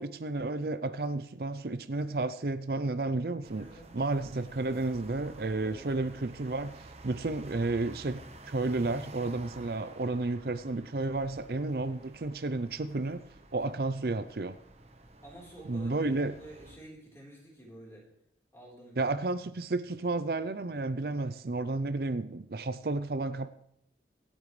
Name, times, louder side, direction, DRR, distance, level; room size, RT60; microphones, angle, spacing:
voice 1, 0.0-3.6 3.9-13.2 13.5-14.5 15.7-16.3 19.0-23.5, right 2 dB, 55° right, 12 dB, 0.5 m, -32 dB
sound 1, 3.4-16.8, right 2 dB, 35° right, 1.1 m, -51 dB
voice 2, 3.5-3.9 5.6-6.3 15.2-18.1 18.5-19.4 21.1-21.2, right 1 dB, 15° left, -2 dB, 4.0 m, -50 dB
25.0 x 9.0 x 3.2 m, 0.76 s
head